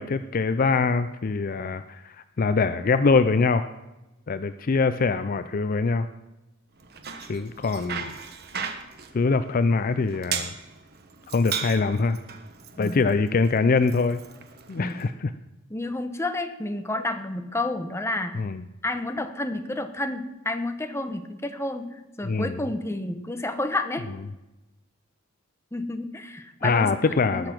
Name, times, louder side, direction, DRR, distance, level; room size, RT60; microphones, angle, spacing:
voice 1, 0.0-3.7 4.3-6.1 7.3-8.2 9.1-10.6 11.3-12.2 12.8-14.2 14.7-15.3 18.3-18.6 22.2-22.6 26.6-27.5, left 4 dB, 45° left, 11 dB, 0.5 m, -23 dB
Bicycle, 6.8-15.1, right 7 dB, 50° right, 1.2 m, -37 dB
voice 2, 15.7-18.4 18.8-24.1 25.7-27.5, left 2 dB, 15° left, 7 dB, 1.0 m, -30 dB
19.0 x 6.9 x 6.0 m, 1.0 s
head